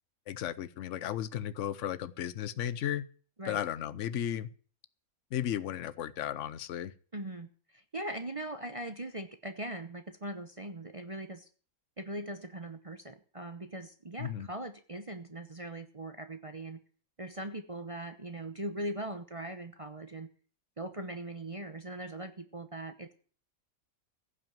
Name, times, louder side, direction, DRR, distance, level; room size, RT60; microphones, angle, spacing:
voice 1, 0.3-3.1 3.4-4.5 5.3-6.9 14.2-14.5, left 10 dB, 60° left, 16 dB, 1.0 m, -34 dB
voice 2, 7.1-11.5 12.0-16.8 17.2-20.3 20.8-23.1, right 1 dB, 25° right, 8 dB, 0.8 m, -40 dB
15.5 x 6.0 x 9.0 m, 0.43 s
omnidirectional pair, 1.5 m